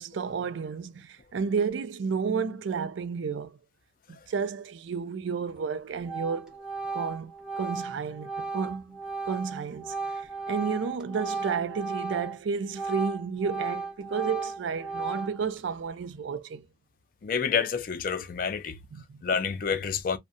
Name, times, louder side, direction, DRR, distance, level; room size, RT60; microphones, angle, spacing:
voice 1, 0.0-3.6 4.1-6.5 6.9-9.0 9.3-16.7 18.9-19.2, right 6 dB, 75° right, 0.4 m, -32 dB
Organ, 5.5-5.7 6.1-12.4 12.7-15.6, right 4 dB, 5° right, 0.6 m, -35 dB
voice 2, 17.2-18.8 19.2-20.2, left 6 dB, 45° left, 0.4 m, -28 dB
2.6 x 2.1 x 2.5 m
head